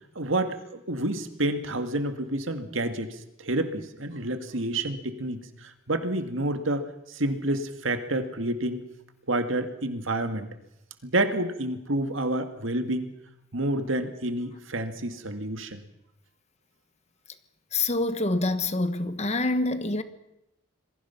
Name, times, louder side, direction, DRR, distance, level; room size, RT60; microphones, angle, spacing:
voice 1, 0.2-8.8 9.3-10.5 11.0-13.1 13.5-15.8, right 1 dB, 65° right, 2.1 m, -29 dB
voice 2, 17.7-20.0, left 2 dB, 30° left, 1.2 m, -26 dB
27.0 x 21.5 x 5.9 m
head